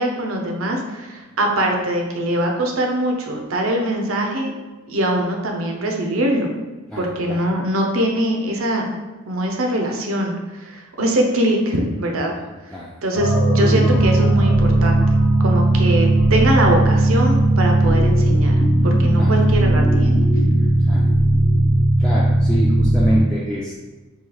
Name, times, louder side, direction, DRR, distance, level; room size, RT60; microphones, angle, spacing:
voice 1, 0.0-4.5 4.9-6.5 7.0-8.9 9.3-12.3 13.0-15.0 15.4-18.6 18.8-20.2, right 1 dB, 80° right, 2 dB, 0.6 m, -22 dB
voice 2, 6.9-7.4 12.4-12.9 19.2-19.3 20.9-21.0 22.0-23.7, equal, 5° left, -6 dB, 0.3 m, -26 dB
sound 1, 13.1-23.2, right 1 dB, 85° left, 0.7 m, -16 dB
3.1 x 2.8 x 3.9 m, 1.2 s
head